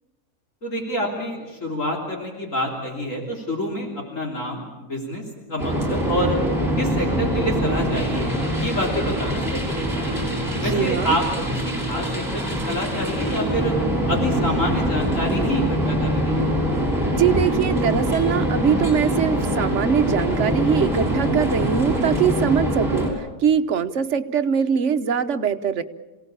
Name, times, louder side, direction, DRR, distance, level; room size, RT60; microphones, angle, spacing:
voice 1, 0.6-5.2 5.5-6.4 6.8-10.2 10.6-13.8 14.1-16.5, equal, 55° left, 0 dB, 3.7 m, -27 dB
sound 1, 5.6-23.1, equal, 15° right, 6.2 m, -23 dB
voice 2, 10.6-11.2 17.1-25.8, right 7 dB, 55° right, 10 dB, 1.2 m, -22 dB
27.0 x 17.5 x 8.7 m, 1.2 s
omnidirectional pair, 1.6 m